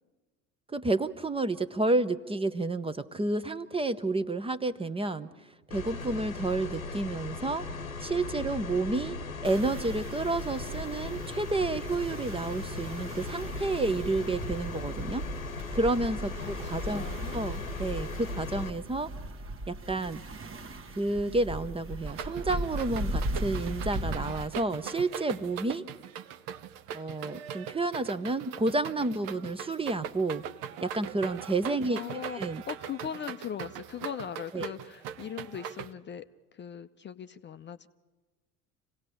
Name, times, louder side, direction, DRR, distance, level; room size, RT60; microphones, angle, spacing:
voice 1, 0.7-7.7 8.0-15.2 15.7-17.0 17.3-19.1 19.7-20.2 21.0-25.8 26.9-30.4 30.8-32.0 32.4-32.6 34.5-34.7, right 2 dB, 15° right, 13 dB, 0.8 m, -30 dB
sound 1, 5.7-18.7, left 3 dB, 85° left, 1.1 m, -38 dB
sound 2, 9.4-24.5, right 1 dB, 30° right, 1.4 m, -38 dB
voice 2, 16.4-17.4 31.9-36.3 36.5-37.9, left 8 dB, 30° left, 10 dB, 0.6 m, -40 dB
sound 3, 22.1-35.9, right 9 dB, 55° right, 0.9 m, -41 dB
26.5 x 17.0 x 6.9 m, 1.3 s
figure-of-eight pair, 60°, 40 cm